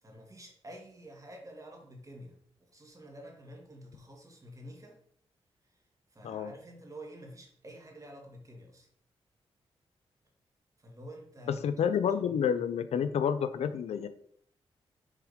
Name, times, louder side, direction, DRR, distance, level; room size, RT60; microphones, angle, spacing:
voice 1, 0.0-5.0 5.7-5.8 6.1-8.9 10.8-11.6 12.3-12.4, equal, 30° right, 0 dB, 2.0 m, -49 dB
voice 2, 11.6-14.1, left 7 dB, 80° left, 12 dB, 0.5 m, -29 dB
6.7 x 3.5 x 5.1 m, 0.65 s
cardioid pair, 70°, 11 cm